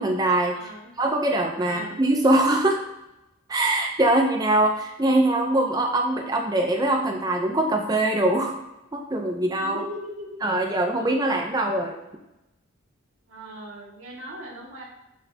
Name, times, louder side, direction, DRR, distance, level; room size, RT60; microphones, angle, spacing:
voice 1, 0.0-0.5 1.0-2.8 3.5-8.6 8.9-9.8 10.4-12.0, right 1 dB, 20° right, 2 dB, 0.5 m, -22 dB
voice 2, 0.5-0.9 1.6-2.0 9.6-10.4 11.0-11.1 13.3-14.8, equal, 85° right, -3 dB, 1.9 m, -38 dB
6.7 x 6.5 x 2.7 m, 0.91 s
head